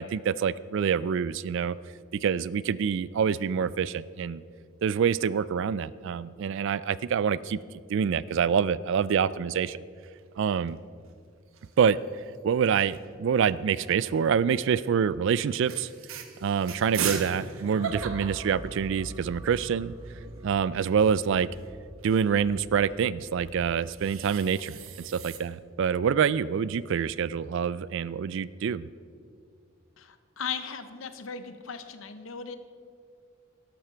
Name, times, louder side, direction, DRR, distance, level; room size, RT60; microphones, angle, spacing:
voice 1, 0.0-1.8 2.2-4.4 4.8-7.6 7.9-9.8 10.4-10.8 11.8-12.0 12.4-15.9 16.4-19.9 20.4-21.5 22.0-28.9, right 7 dB, 65° right, 19 dB, 0.3 m, -26 dB
sound 1, 10.0-10.7 11.1-11.2 11.4-12.0 12.9-14.1 14.7-14.9 15.3-15.4 15.6-19.3 19.7-19.8 19.9-22.2 23.5-25.4, right 7 dB, 85° right, 1.0 m, -38 dB
sound 2, 17.7-26.0, right 1 dB, 20° right, 0.9 m, -45 dB
voice 2, 30.0-32.6, left 6 dB, 70° left, 10 dB, 0.8 m, -37 dB
12.0 x 12.0 x 4.5 m, 2.2 s
head